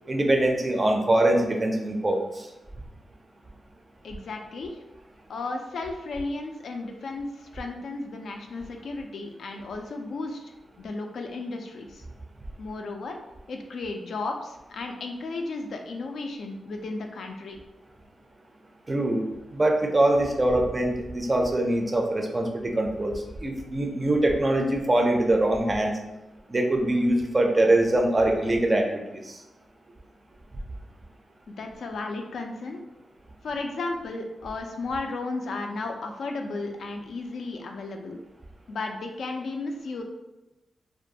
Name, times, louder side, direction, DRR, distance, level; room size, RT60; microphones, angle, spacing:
voice 1, 0.1-2.5 18.9-23.1 23.4-26.0 26.5-29.4, right 1 dB, 25° right, 2 dB, 0.4 m, -23 dB
voice 2, 4.0-4.8 5.3-10.5 10.8-12.0 12.6-13.2 13.5-17.6 31.5-32.8 33.4-38.2 38.7-40.0, left 3 dB, 75° left, 4 dB, 0.3 m, -34 dB
2.4 x 2.2 x 2.7 m, 1.0 s
wide cardioid pair, 110°, 0 cm